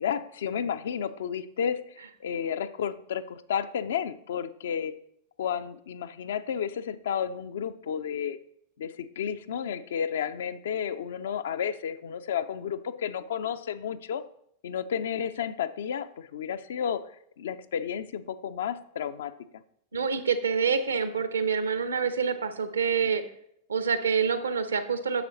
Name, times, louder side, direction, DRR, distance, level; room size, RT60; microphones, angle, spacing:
voice 1, 0.0-5.0 5.4-8.4 8.8-14.2 14.6-17.1 17.4-19.3, left 8 dB, 60° left, 11 dB, 0.6 m, -32 dB
voice 2, 19.9-23.2 23.7-25.2, right 6 dB, 70° right, 11 dB, 0.9 m, -27 dB
10.0 x 6.9 x 4.0 m, 0.70 s
figure-of-eight pair, 90°, 0 cm